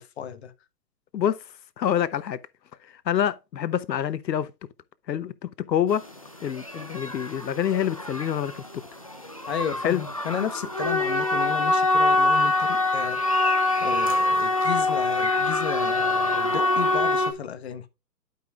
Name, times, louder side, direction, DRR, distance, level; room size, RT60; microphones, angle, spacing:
voice 1, 0.2-0.5 9.5-13.5 13.8-17.8, left 8 dB, 40° left, 1.1 m, -33 dB
voice 2, 1.1-1.4 1.8-2.4 3.1-4.5 5.1-6.1 6.4-8.8 9.8-10.0, left 9 dB, 85° left, 0.8 m, -26 dB
sound 1, 5.9-6.1 6.4-17.3, left 2 dB, 25° left, 0.4 m, -24 dB
12.5 x 5.6 x 2.4 m
hypercardioid pair, 155°, 49 cm